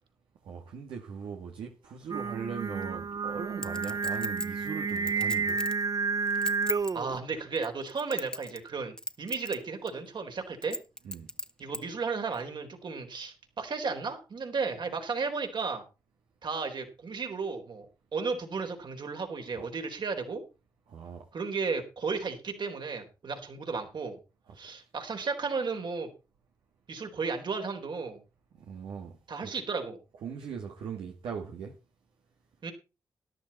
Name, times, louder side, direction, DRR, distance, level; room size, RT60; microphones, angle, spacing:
voice 1, 0.4-5.6 11.0-11.3 19.6-19.7 20.9-21.2 24.5-24.6 28.5-29.1 29.4-29.5 30.2-31.7, right 6 dB, 85° right, 2.0 m, -39 dB
Singing, 2.1-7.2, right 5 dB, 45° right, 0.6 m, -31 dB
Chink clink, 3.6-5.8 6.3-6.9 7.6-8.7 9.0-9.6 9.9-10.0 10.6-11.8 12.3-12.4, left 1 dB, 10° left, 1.5 m, -36 dB
voice 2, 6.9-10.8 11.6-15.8 16.4-20.4 21.3-24.2 24.6-26.1 26.9-28.2 29.3-30.0 32.6-32.7, right 4 dB, 60° right, 4.0 m, -34 dB
13.5 x 11.5 x 4.3 m
supercardioid pair, 50°, 9 cm